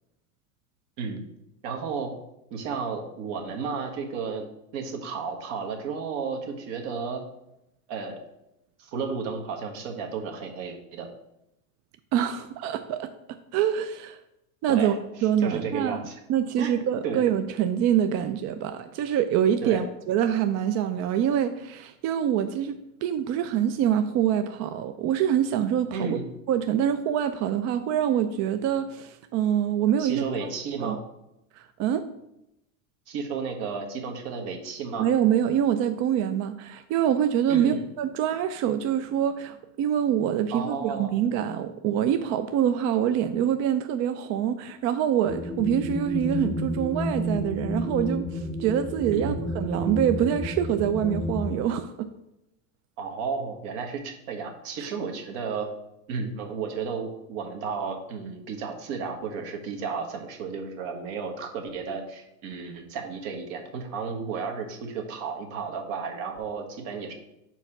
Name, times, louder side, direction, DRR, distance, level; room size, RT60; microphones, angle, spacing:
voice 1, 1.6-2.1 2.5-4.4 4.7-7.2 7.9-8.2 8.8-11.1 14.7-16.2 16.6-16.7 17.0-17.2 19.6-19.8 25.9-26.3 30.0-31.0 33.1-35.1 37.5-37.8 40.5-41.2 49.1-49.4 53.0-55.7 56.1-67.1, right 5 dB, 65° right, 2 dB, 1.5 m, -33 dB
voice 2, 12.1-13.1 13.5-14.2 14.6-14.9 15.2-16.0 16.3-26.2 26.5-30.3 30.8-31.0 31.6-32.0 35.0-52.1 54.8-54.9, right 9 dB, 40° right, 8 dB, 0.4 m, -25 dB
sound 1, 45.3-51.6, left 1 dB, 5° left, 0.7 m, -31 dB
4.6 x 4.4 x 5.8 m, 0.87 s
supercardioid pair, 110°, 43 cm